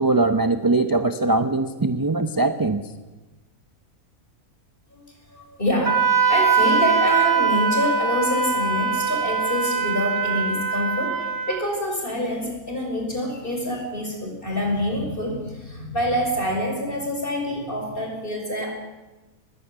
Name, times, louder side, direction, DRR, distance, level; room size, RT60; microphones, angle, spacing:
voice 1, 0.0-2.8, right 2 dB, 20° right, 9 dB, 0.7 m, -21 dB
voice 2, 4.9-18.7, left 1 dB, 35° left, 2 dB, 6.1 m, -26 dB
Wind instrument woodwind instrument, 5.9-11.6, right 5 dB, 45° right, 1.8 m, -22 dB
20.5 x 16.0 x 10.0 m, 1.1 s
omnidirectional pair, 1.5 m